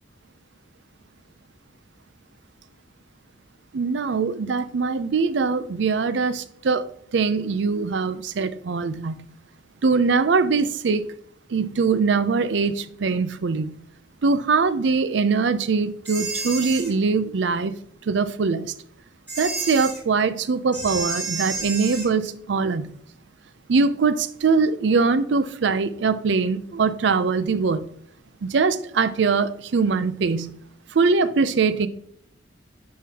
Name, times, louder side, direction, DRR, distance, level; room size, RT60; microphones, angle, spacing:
voice 1, 3.7-6.9 7.1-9.3 9.8-11.1 11.5-13.7 14.2-17.7 18.1-18.7 19.4-22.9 23.7-27.9 28.4-30.5 30.9-31.9, right 4 dB, 70° right, 0.5 m, -22 dB
sound 1, 16.0-16.9 19.3-20.0 20.7-22.1, right 4 dB, 15° right, 2.4 m, -30 dB
9.4 x 3.8 x 2.8 m
head